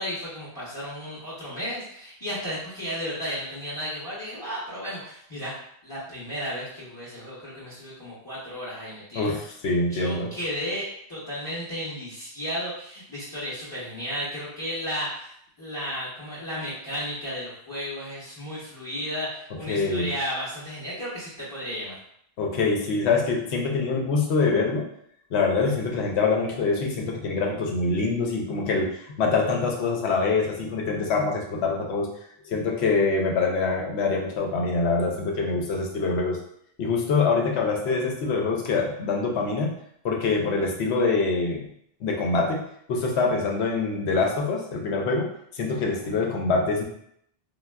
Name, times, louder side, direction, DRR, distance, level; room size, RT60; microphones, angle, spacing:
voice 1, 0.0-5.5 5.8-9.3 9.9-22.0 45.9-46.1, equal, 25° left, -9 dB, 0.7 m, -34 dB
voice 2, 9.1-10.3 19.7-20.1 22.4-24.9 25.3-28.9 29.2-32.1 32.4-36.4 36.8-39.7 40.0-41.6 42.0-46.8, left 4 dB, 85° left, 0 dB, 0.9 m, -25 dB
3.4 x 2.3 x 2.2 m, 0.71 s
omnidirectional pair, 1.1 m